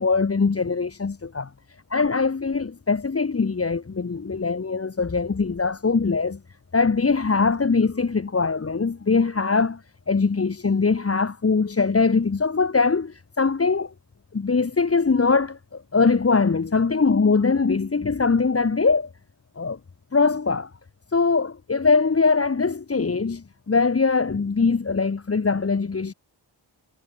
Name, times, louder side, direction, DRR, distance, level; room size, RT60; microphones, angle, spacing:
voice 1, 0.0-1.5 1.9-6.4 6.7-9.8 10.1-13.9 14.3-19.1 19.6-19.8 20.1-20.7 21.1-26.1, left 4 dB, 30° left, 1.3 m, -22 dB
wide cardioid pair, 105°, 46 cm